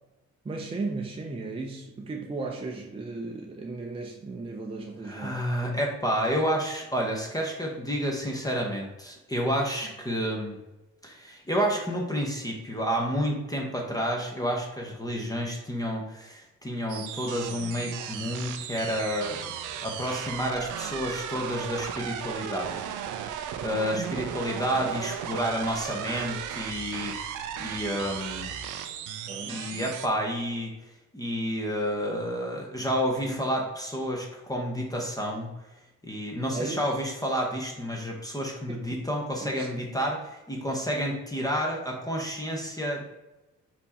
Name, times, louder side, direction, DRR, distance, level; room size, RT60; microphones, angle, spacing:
voice 1, 0.4-5.4 9.8-9.9 23.9-24.3 29.3-29.6 33.2-33.4 36.5-36.8 38.7-38.8 39.4-39.7, right 3 dB, 20° right, 1 dB, 0.6 m, -35 dB
voice 2, 5.0-10.6 11.0-19.5 19.8-22.8 23.6-28.5 29.5-30.7 31.1-35.5 36.0-43.2, equal, 10° left, 0 dB, 0.8 m, -30 dB
sound 1, 16.9-30.1, right 9 dB, 90° right, 0.5 m, -36 dB
4.4 x 2.9 x 4.1 m, 1.0 s
cardioid pair, 90°, 30 cm